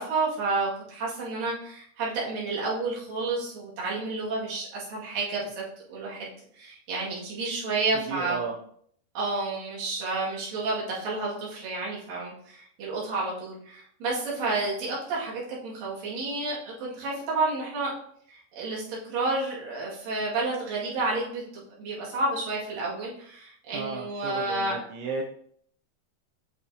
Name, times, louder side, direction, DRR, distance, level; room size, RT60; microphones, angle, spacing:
voice 1, 0.0-5.6 5.9-8.4 9.2-17.9 18.3-24.8, right 3 dB, 55° right, -6 dB, 3.3 m, -30 dB
voice 2, 8.0-8.6 23.7-25.2, right 4 dB, 80° right, 0 dB, 3.0 m, -34 dB
7.9 x 5.8 x 2.8 m, 0.63 s
omnidirectional pair, 5.4 m